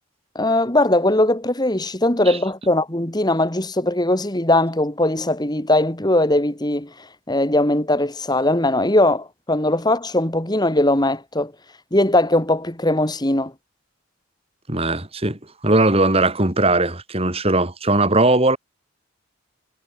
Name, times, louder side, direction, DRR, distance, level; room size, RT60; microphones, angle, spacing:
voice 1, 0.3-6.9 7.3-11.5 11.9-13.5, left 1 dB, 20° left, 2.3 m, -20 dB
voice 2, 14.7-18.6, right 2 dB, 30° right, 3.7 m, -19 dB
head